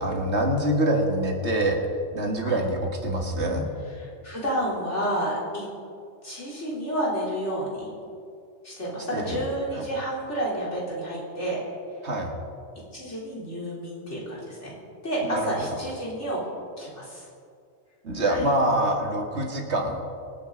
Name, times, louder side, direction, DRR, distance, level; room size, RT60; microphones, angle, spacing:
voice 1, 0.0-1.8 2.1-3.7 9.1-9.4 9.7-9.8 12.0-12.3 15.2-15.5 18.0-20.0, right 1 dB, 70° right, 1 dB, 2.2 m, -25 dB
voice 2, 4.0-5.7 6.2-7.9 8.6-11.6 12.9-14.7 15.0-16.4 16.8-17.3 18.2-18.5, right 1 dB, 80° left, -6 dB, 4.1 m, -30 dB
24.5 x 9.2 x 3.9 m, 2.3 s
omnidirectional pair, 1.2 m